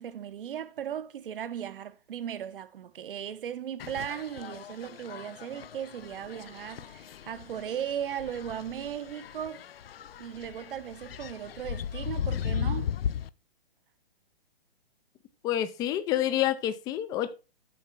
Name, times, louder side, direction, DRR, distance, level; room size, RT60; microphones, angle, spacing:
voice 1, 0.0-9.7 10.2-13.0, right 9 dB, 60° right, 1.1 m, -37 dB
sound 1, 3.8-13.3, left 8 dB, 70° left, 0.7 m, -37 dB
voice 2, 15.4-17.3, left 12 dB, 10° left, 0.6 m, -28 dB
8.9 x 5.5 x 6.1 m
hypercardioid pair, 145°, 30 cm